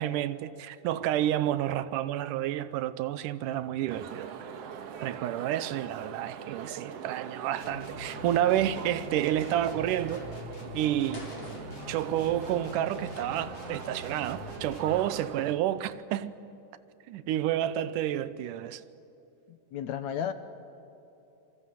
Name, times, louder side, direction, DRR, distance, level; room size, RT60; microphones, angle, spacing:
voice 1, 0.0-4.3 5.0-10.3 10.7-11.3 11.9-16.4 17.1-18.8, right 12 dB, 85° right, 2.4 m, -30 dB
sound 1, 3.9-15.5, right 7 dB, 60° right, 2.0 m, -42 dB
sound 2, 7.5-15.1, left 2 dB, 50° left, 3.2 m, -44 dB
sound 3, 8.0-15.3, left 2 dB, 35° left, 4.3 m, -51 dB
voice 2, 19.5-20.3, left 9 dB, 70° left, 2.1 m, -33 dB
27.0 x 25.0 x 7.7 m
omnidirectional pair, 3.7 m